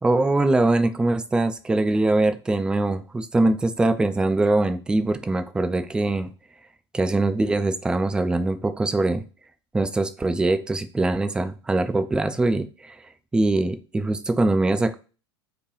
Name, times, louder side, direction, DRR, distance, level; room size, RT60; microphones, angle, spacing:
voice 1, 0.0-6.3 6.9-9.2 9.7-13.0 13.3-14.9, right 2 dB, 5° right, 10 dB, 0.3 m, -22 dB
4.9 x 2.2 x 3.0 m, 0.34 s
figure-of-eight pair, 80°, 14 cm